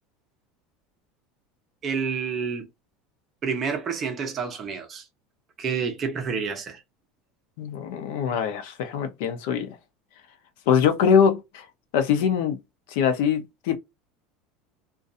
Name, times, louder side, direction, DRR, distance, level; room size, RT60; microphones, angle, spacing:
voice 1, 1.8-2.7 3.4-5.0 5.6-6.8, right 6 dB, 25° right, 0.6 m, -29 dB
voice 2, 7.6-9.8 10.7-11.7 11.9-12.6 12.9-13.8, left 7 dB, 65° left, 0.6 m, -23 dB
2.5 x 2.2 x 2.5 m
cardioid pair, 175°, 0 cm